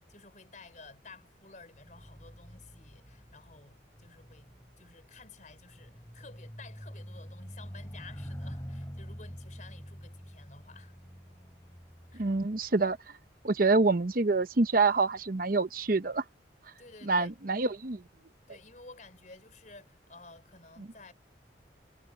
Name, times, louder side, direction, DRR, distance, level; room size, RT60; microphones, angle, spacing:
voice 1, 0.0-10.9 12.1-12.3 16.8-17.4 18.5-21.1, left 3 dB, 45° left, 4.7 m, -53 dB
sound 1, 1.8-13.4 14.1-14.4, equal, 15° left, 7.3 m, -46 dB
voice 2, 12.2-13.0 13.4-16.2 17.1-18.0, right 3 dB, 50° right, 0.8 m, -26 dB
head